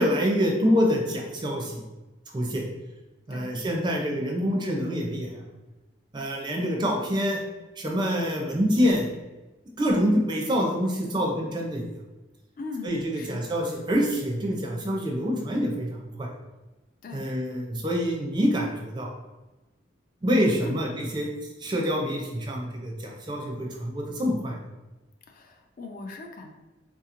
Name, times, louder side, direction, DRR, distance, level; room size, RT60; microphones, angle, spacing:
voice 1, 0.0-1.8 2.3-2.6 3.3-5.4 6.1-7.4 7.8-9.1 9.8-11.8 12.8-16.3 17.1-19.1 20.2-21.3 21.6-24.6, equal, 25° right, 0 dB, 0.4 m, -26 dB
voice 2, 12.6-13.6 17.0-17.2 20.6-20.8 25.3-26.5, left 3 dB, 45° left, 3 dB, 0.4 m, -39 dB
3.6 x 2.8 x 2.5 m, 1.1 s
head